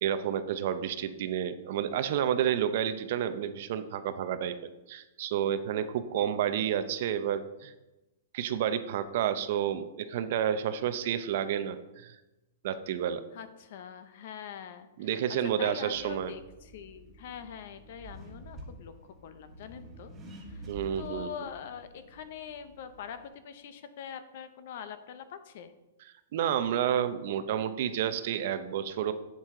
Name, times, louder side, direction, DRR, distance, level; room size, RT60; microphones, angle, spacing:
voice 1, 0.0-4.6 4.9-7.7 8.3-12.2 12.6-13.2 15.0-16.3 20.7-21.3 26.3-29.1, right 9 dB, 45° right, 11 dB, 0.6 m, -30 dB
voice 2, 13.3-15.1 15.6-18.9 19.2-20.1 20.4-20.6 21.0-25.7, left 8 dB, 50° left, 11 dB, 0.7 m, -43 dB
Accelerating revving vroom, 15.9-23.3, equal, 15° right, 1.4 m, -49 dB
8.4 x 7.5 x 3.7 m, 1.0 s
hypercardioid pair, 165°, 0 cm